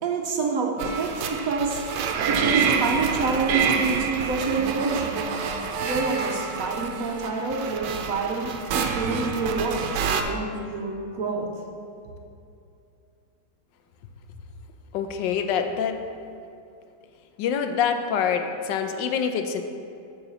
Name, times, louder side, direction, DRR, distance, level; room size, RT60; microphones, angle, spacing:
voice 1, 0.0-2.0 2.3-5.2 5.8-11.5, right 4 dB, 60° right, 0 dB, 1.1 m, -27 dB
sound 1, 0.8-10.2, right 6 dB, 75° right, 1.3 m, -27 dB
voice 2, 14.9-16.0 17.4-19.6, left 7 dB, 85° left, 6 dB, 1.3 m, -25 dB
8.8 x 4.0 x 6.9 m, 2.6 s
omnidirectional pair, 1.9 m